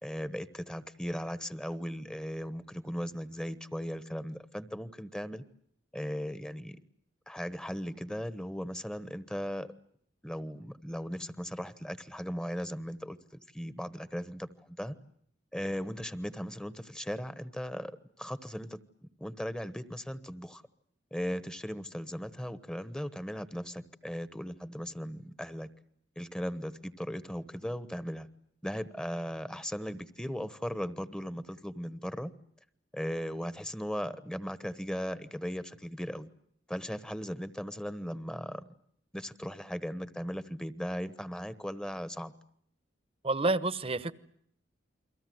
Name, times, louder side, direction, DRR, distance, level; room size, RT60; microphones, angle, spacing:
voice 1, 0.0-5.4 5.9-6.8 7.3-9.7 10.2-13.2 13.5-14.9 15.5-20.6 21.1-25.7 26.2-28.3 28.6-32.3 32.9-36.3 36.7-38.6 39.1-42.3, equal, 5° left, 13 dB, 1.1 m, -37 dB
voice 2, 43.2-44.1, right 2 dB, 30° right, 15 dB, 1.0 m, -28 dB
29.5 x 23.0 x 7.9 m, 0.68 s
head